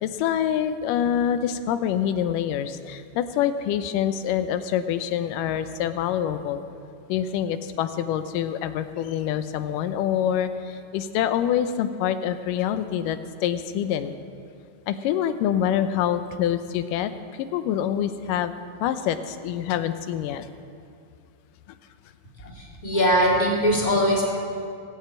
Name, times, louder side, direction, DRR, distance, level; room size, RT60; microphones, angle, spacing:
voice 1, 0.0-6.6 7.1-14.2 14.9-17.1 17.4-18.5 18.8-20.5, left 10 dB, 80° left, 10 dB, 2.3 m, -26 dB
voice 2, 22.4-24.2, equal, 15° left, -4 dB, 2.5 m, -21 dB
19.0 x 6.8 x 8.8 m, 2.4 s
omnidirectional pair, 3.9 m